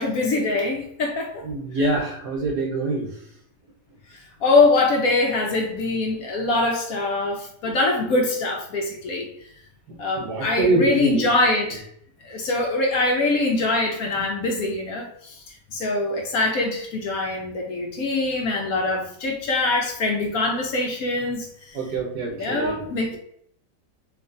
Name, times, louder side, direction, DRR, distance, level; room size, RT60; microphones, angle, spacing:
voice 1, 0.0-1.5 4.4-9.3 10.0-11.9 12.2-15.4 15.7-21.5 22.3-23.1, left 2 dB, 65° left, 1 dB, 1.1 m, -23 dB
voice 2, 1.4-3.2 7.6-7.8 9.9-11.3 14.2-14.3 21.7-23.2, right 2 dB, 70° right, 0 dB, 1.5 m, -25 dB
4.3 x 2.7 x 2.5 m, 0.67 s
omnidirectional pair, 1.8 m